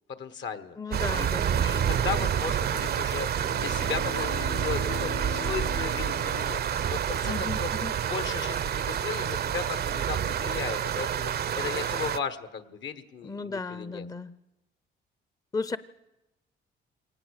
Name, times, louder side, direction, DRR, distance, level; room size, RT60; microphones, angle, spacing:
voice 1, 0.1-0.8 1.1-1.3 1.6-6.6 6.9-7.7 8.0-14.1, left 6 dB, 65° left, 12 dB, 1.5 m, -36 dB
voice 2, 0.8-2.0 7.2-7.9 13.2-14.3 15.5-15.8, left 4 dB, 15° left, 15 dB, 0.7 m, -35 dB
sound 1, 0.9-12.2, right 9 dB, 50° right, 0.6 m, -28 dB
Bowed string instrument, 3.3-7.6, left 8 dB, 90° left, 2.2 m, -41 dB
22.5 x 18.5 x 6.6 m, 0.95 s
cardioid pair, 90°, 20 cm